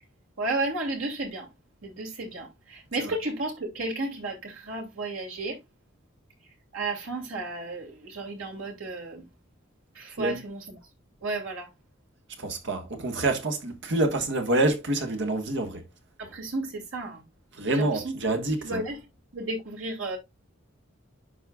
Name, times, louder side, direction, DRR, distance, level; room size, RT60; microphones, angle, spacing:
voice 1, 0.4-1.5 1.8-5.6 6.7-9.2 9.9-10.6 11.2-11.7 16.2-17.2 17.7-18.1 18.6-19.0 19.3-20.2, right 2 dB, 85° right, 2.7 m, -33 dB
voice 2, 12.4-15.8 17.5-18.8, right 2 dB, 60° right, 1.5 m, -27 dB
11.0 x 4.4 x 2.4 m
head